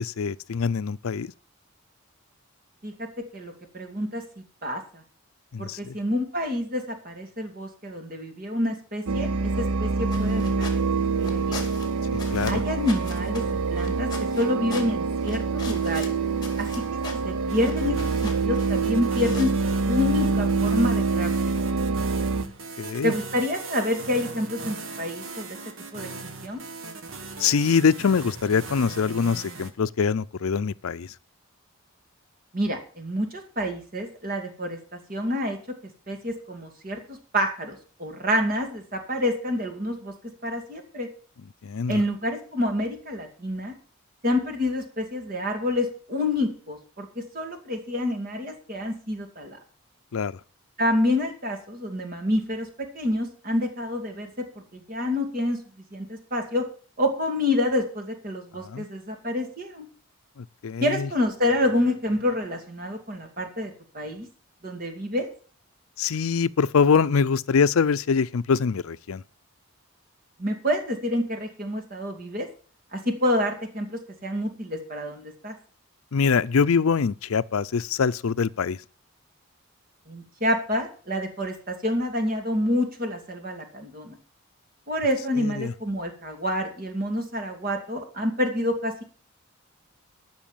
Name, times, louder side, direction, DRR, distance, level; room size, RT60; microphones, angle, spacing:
voice 1, 0.0-1.3 5.5-5.9 12.1-12.6 22.8-23.1 27.4-31.1 41.6-42.0 50.1-50.3 58.6-58.9 60.4-61.1 66.0-69.2 76.1-78.8 85.4-85.7, left 6 dB, 75° left, 0.5 m, -24 dB
voice 2, 3.3-4.2 4.6-4.8 5.6-10.7 11.2-11.6 12.5-13.4 13.7-14.1 14.4-16.1 16.6-17.0 17.2-19.5 19.9-21.6 23.0-25.5 25.9-26.6 32.5-34.8 35.1-35.6 36.1-40.1 40.4-41.1 41.9-43.7 44.2-47.1 47.3-49.6 50.8-52.7 52.9-54.3 54.7-55.6 55.9-56.6 57.0-59.9 60.8-64.3 64.6-65.3 70.4-72.5 72.9-75.5 80.1-84.2 84.9-89.0, left 1 dB, 40° right, 2.4 m, -28 dB
sound 1, 9.1-22.4, right 4 dB, 85° right, 0.7 m, -26 dB
sound 2, 10.0-19.5, left 3 dB, 20° left, 2.3 m, -42 dB
sound 3, 17.5-29.7, right 3 dB, 65° right, 1.5 m, -39 dB
13.5 x 6.2 x 7.3 m
head